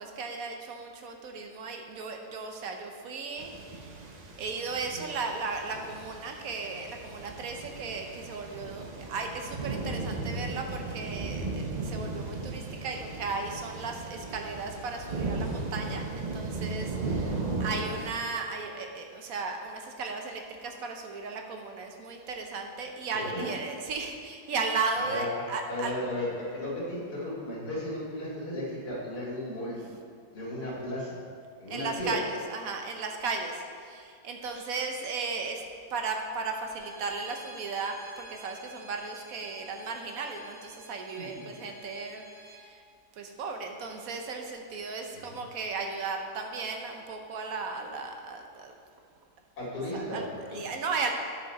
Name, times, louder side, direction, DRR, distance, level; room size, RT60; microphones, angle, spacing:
voice 1, 0.0-4.1 4.4-8.8 9.1-25.9 31.7-35.6 35.9-42.8 43.1-48.7 49.9-50.2 50.5-51.1, right 4 dB, 65° right, 3 dB, 1.2 m, -35 dB
sound 1, 3.4-18.1, right 3 dB, 50° right, 0.5 m, -36 dB
voice 2, 23.1-23.5 24.9-29.8 30.3-31.2 31.6-32.2 41.1-41.5 45.1-45.3 49.6-50.6, left 1 dB, 70° left, -7 dB, 2.7 m, -35 dB
Bowed string instrument, 36.7-42.6, equal, 30° right, 2.1 m, -51 dB
9.3 x 6.4 x 4.1 m, 2.2 s
omnidirectional pair, 1.7 m